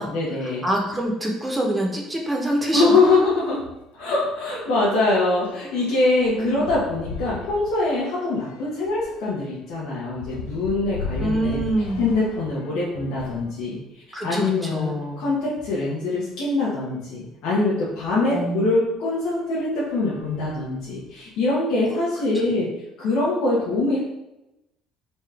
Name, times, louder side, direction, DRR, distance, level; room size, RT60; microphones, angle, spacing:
voice 1, 0.0-0.6 2.7-3.6 4.0-11.6 12.0-13.8 14.1-22.7 23.0-24.0, left 2 dB, 70° left, -8 dB, 1.0 m, -23 dB
voice 2, 0.6-2.8 6.3-6.7 11.2-12.0 14.1-15.2 18.3-18.7, right 1 dB, 15° right, 0 dB, 0.9 m, -25 dB
sound 1, 3.1-3.2 3.6-3.7 4.1-13.5 14.3-15.6 16.3-16.4 16.6-16.7 18.4-18.6 19.2-19.4 19.8-21.1, left 4 dB, 90° left, 0.4 m, -38 dB
4.1 x 2.4 x 3.3 m, 0.93 s
hypercardioid pair, 65°, 0 cm